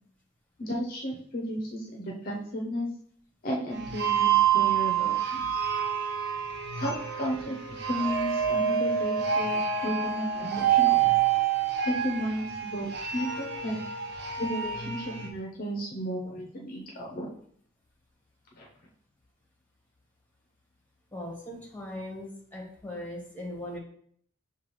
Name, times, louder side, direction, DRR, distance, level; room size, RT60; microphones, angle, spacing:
voice 1, 0.6-2.9 3.4-5.5 6.8-7.6 7.8-11.1 11.8-13.8 14.4-17.3 18.6-18.7, equal, 45° left, -2 dB, 0.6 m, -33 dB
sound 1, 3.7-15.3, right 9 dB, 55° right, 0.5 m, -27 dB
voice 2, 21.1-23.8, left 1 dB, 10° left, -2 dB, 1.2 m, -39 dB
6.8 x 2.3 x 3.1 m, 0.62 s
head